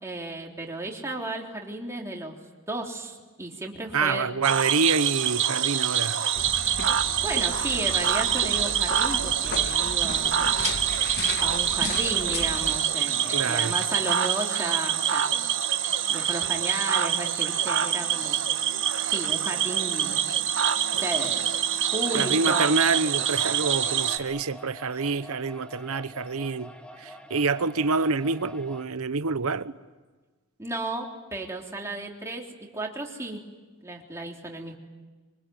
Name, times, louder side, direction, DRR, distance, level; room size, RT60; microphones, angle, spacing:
voice 1, 0.0-2.3 2.7-4.3 7.2-10.6 11.4-15.2 16.1-18.4 19.1-20.2 20.9-21.4 21.9-22.8 24.9-25.1 30.6-33.4 33.8-34.7, right 2 dB, 15° right, 3.4 m, -34 dB
voice 2, 3.9-6.2 13.3-13.8 22.2-26.7 27.0-29.8, right 4 dB, 75° right, 0.9 m, -27 dB
Cricket / Frog, 4.4-24.2, right 9 dB, 60° right, 1.5 m, -25 dB
sound 1, 6.4-12.8, left 3 dB, 50° left, 1.8 m, -36 dB
sound 2, 22.0-28.8, equal, 5° left, 1.4 m, -46 dB
25.5 x 24.5 x 9.5 m
head